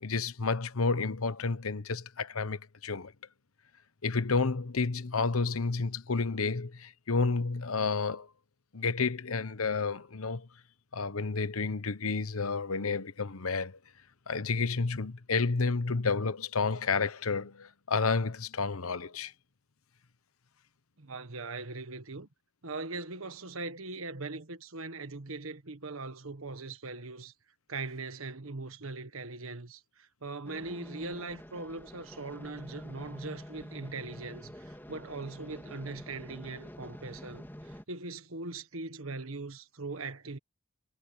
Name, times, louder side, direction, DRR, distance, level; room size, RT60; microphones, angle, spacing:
voice 1, 0.0-3.1 4.0-8.3 8.7-10.5 10.9-13.8 14.3-19.3, left 4 dB, 85° left, 1.1 m, -30 dB
voice 2, 21.0-22.3 22.6-27.3 27.7-40.4, right 3 dB, 80° right, 1.5 m, -40 dB
sound 1, 30.4-37.8, equal, 10° left, 3.7 m, -47 dB
head